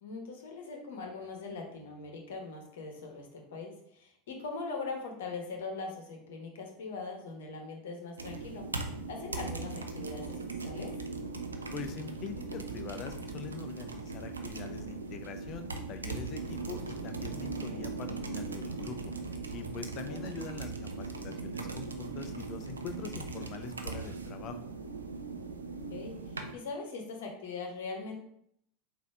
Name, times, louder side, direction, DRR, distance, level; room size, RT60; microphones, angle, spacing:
voice 1, 0.0-8.7 9.1-10.9 20.0-20.3 25.9-28.2, left 4 dB, 70° left, 2 dB, 1.0 m, -41 dB
sound 1, 8.2-26.5, right 4 dB, 90° right, 0.4 m, -39 dB
voice 2, 11.7-19.1 19.5-24.6, left 7 dB, 45° left, 7 dB, 0.5 m, -43 dB
4.0 x 2.7 x 4.8 m, 0.70 s
hypercardioid pair, 85°, 0 cm